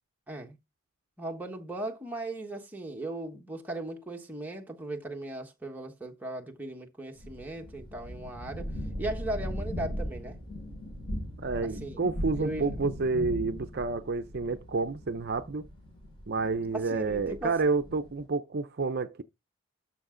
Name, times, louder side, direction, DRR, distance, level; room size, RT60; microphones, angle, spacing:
voice 1, 0.3-0.6 1.2-8.7 9.0-10.4 11.6-12.0 12.4-12.7 16.7-17.6, right 2 dB, 10° right, 1.3 m, -37 dB
sound 1, 7.2-18.2, equal, 25° left, 5.2 m, -39 dB
voice 2, 11.4-15.7 16.3-19.2, right 4 dB, 50° right, 0.6 m, -29 dB
12.5 x 5.7 x 3.8 m
head